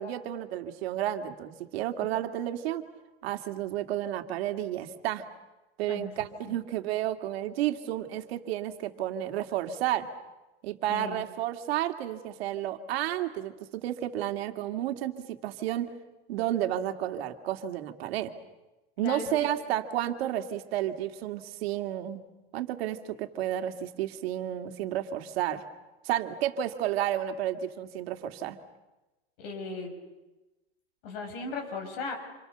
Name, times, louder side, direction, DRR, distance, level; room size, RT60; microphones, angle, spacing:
voice 1, 0.0-2.9 3.2-5.3 5.8-10.1 10.6-15.9 16.3-18.3 19.0-22.2 22.5-25.6 26.0-28.6, right 12 dB, 70° right, 6 dB, 2.3 m, -31 dB
voice 2, 10.9-11.2 19.0-19.3 29.4-29.9 31.0-32.2, left 4 dB, 65° left, 3 dB, 7.4 m, -37 dB
28.5 x 28.0 x 6.8 m, 1.1 s
supercardioid pair, 155°, 32 cm